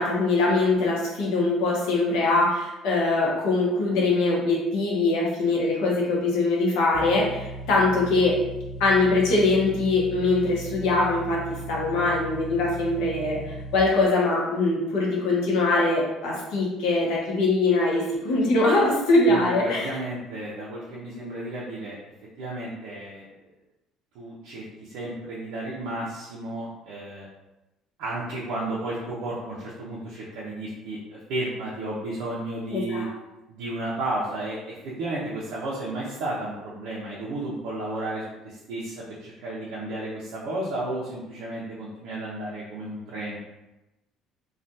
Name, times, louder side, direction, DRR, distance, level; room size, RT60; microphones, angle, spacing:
voice 1, 0.0-8.4 8.8-19.9 32.7-33.1, left 2 dB, 75° left, -4 dB, 0.9 m, -22 dB
sound 1, 6.9-13.8, right 1 dB, 55° left, 0.4 m, -37 dB
voice 2, 19.3-22.0 22.4-23.2 24.1-27.2 28.0-33.1 33.5-43.4, right 1 dB, 75° right, -7 dB, 0.6 m, -33 dB
3.2 x 2.3 x 2.7 m, 1.0 s
cardioid pair, 170°, 0 cm